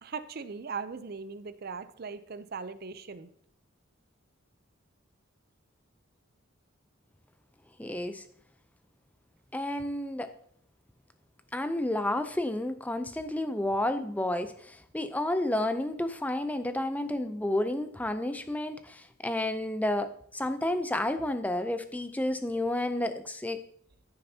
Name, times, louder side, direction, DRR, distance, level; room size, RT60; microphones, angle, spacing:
voice 1, 0.0-3.3, right 5 dB, 50° right, 12 dB, 0.5 m, -39 dB
voice 2, 7.8-8.2 9.5-10.3 11.5-23.6, left 1 dB, 5° left, 10 dB, 0.5 m, -31 dB
13.5 x 6.7 x 2.8 m, 0.64 s
head